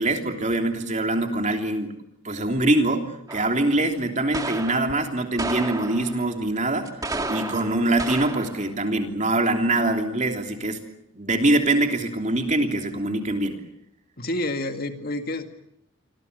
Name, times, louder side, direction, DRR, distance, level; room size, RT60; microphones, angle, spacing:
voice 1, 0.0-1.9 2.2-6.9 7.3-10.8 11.1-13.6, right 2 dB, 35° right, 4 dB, 3.2 m, -24 dB
sound 1, 3.3-3.7 4.3-4.9 5.4-6.3 6.9-8.6, right 2 dB, 15° right, 1.9 m, -32 dB
voice 2, 14.2-15.5, left 1 dB, 45° left, 6 dB, 2.2 m, -28 dB
28.0 x 25.5 x 6.8 m, 0.75 s
head